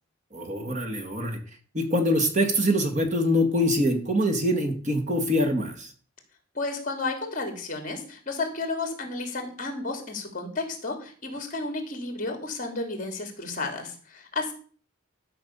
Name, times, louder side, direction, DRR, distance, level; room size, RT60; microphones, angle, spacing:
voice 1, 0.3-1.4 1.7-5.9, equal, 35° right, 4 dB, 1.7 m, -24 dB
voice 2, 6.5-14.5, left 3 dB, 40° left, 5 dB, 2.7 m, -32 dB
12.5 x 5.7 x 6.9 m, 0.43 s
head